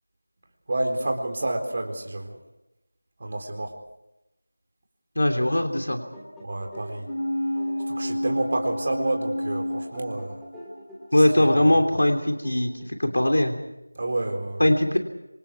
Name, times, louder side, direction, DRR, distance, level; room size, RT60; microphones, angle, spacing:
voice 1, 0.7-2.4 3.2-3.7 6.4-7.1 7.9-10.4 11.1-11.5 14.0-14.7, right 2 dB, 35° right, 3 dB, 4.1 m, -29 dB
voice 2, 5.1-6.0 11.1-12.7 13.0-13.5 14.6-15.0, left 1 dB, 65° left, 5 dB, 3.1 m, -20 dB
sound 1, 5.7-13.0, equal, 5° left, 2.6 m, -46 dB
sound 2, 7.0-10.8 11.2-11.3, left 1 dB, 90° left, 1.0 m, -30 dB
27.0 x 27.0 x 4.8 m, 0.94 s
figure-of-eight pair, 170°, 0 cm